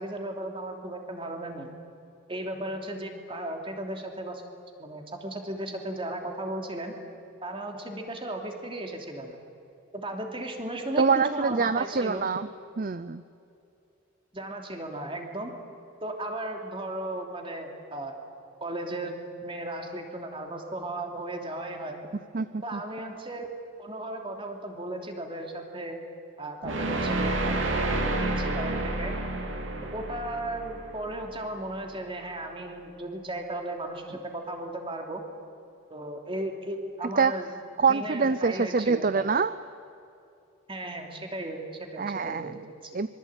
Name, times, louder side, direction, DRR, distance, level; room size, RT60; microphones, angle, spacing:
voice 1, 0.0-1.7 2.3-4.4 4.8-7.0 7.4-9.4 9.9-11.0 11.3-12.3 14.3-15.5 16.0-18.2 18.6-22.1 22.6-23.5 23.8-26.0 26.4-29.1 29.9-35.2 35.9-37.5 37.8-39.2 40.7-42.8, right 1 dB, 25° right, 3 dB, 3.0 m, -36 dB
voice 2, 11.0-12.5 12.8-13.2 22.3-22.8 37.2-37.3 37.8-39.6 42.0-42.5 42.9-43.1, right 5 dB, 40° right, 14 dB, 0.5 m, -25 dB
sound 1, 26.6-31.7, right 2 dB, 60° right, 3.2 m, -30 dB
25.5 x 24.0 x 9.0 m, 2.7 s
head